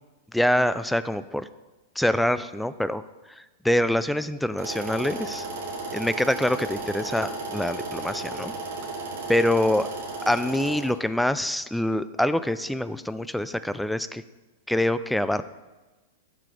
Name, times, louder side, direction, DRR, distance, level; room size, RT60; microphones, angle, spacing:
voice 1, 0.3-1.5 2.0-3.0 3.3-5.5 5.9-8.5 9.3-9.9 10.3-14.2 14.7-15.4, left 1 dB, ahead, 13 dB, 0.4 m, -25 dB
sound 1, 4.6-10.9, right 3 dB, 60° right, 2.3 m, -34 dB
11.5 x 6.8 x 3.3 m, 1.1 s
hypercardioid pair, 105°, 0 cm